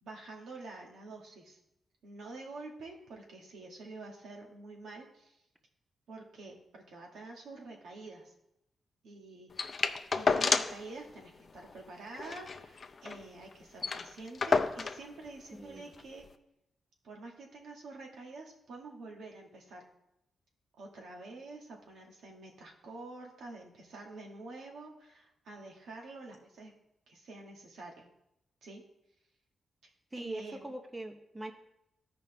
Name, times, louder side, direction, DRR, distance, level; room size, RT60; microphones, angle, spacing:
voice 1, 0.0-1.6 2.0-5.4 6.1-8.3 9.0-9.9 10.1-16.3 17.0-19.8 20.8-26.7 27.1-28.1 28.6-28.8 29.8-30.6, right 2 dB, 80° right, 0 dB, 1.9 m, -48 dB
sound 1, 9.6-10.9 11.2-11.3 11.6-11.7 12.1-13.2 13.5-13.6 13.8-15.1 15.9-16.0, left 4 dB, 40° left, 0.5 m, -30 dB
voice 2, 15.6-15.9 30.1-31.5, right 1 dB, 10° right, 5 dB, 0.8 m, -41 dB
14.0 x 5.2 x 3.4 m, 0.83 s
cardioid pair, 105°, 0 cm